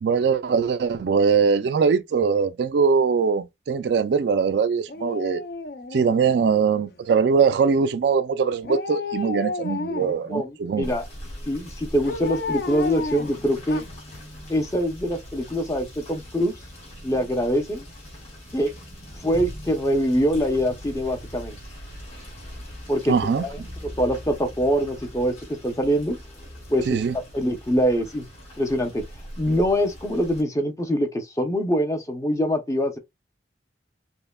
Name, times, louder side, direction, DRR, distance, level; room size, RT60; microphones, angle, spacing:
voice 1, 0.0-5.4 5.9-10.9 23.1-23.4 26.9-27.1, right 5 dB, 65° right, 0.3 m, -21 dB
Dog, 4.9-6.9 8.6-10.3 12.1-14.2 14.5-14.6, left 3 dB, 55° left, 0.5 m, -32 dB
voice 2, 10.0-11.1 11.5-13.8 14.5-16.5 17.0-17.9 18.5-18.7 19.2-21.6 22.9-23.6 23.8-26.2 26.7-28.2 28.6-29.0 29.4-33.0, equal, 15° left, 0.6 m, -24 dB
Rain / Motor vehicle (road), 10.8-30.4, equal, 35° left, 2.3 m, -41 dB
5.4 x 2.1 x 2.2 m
head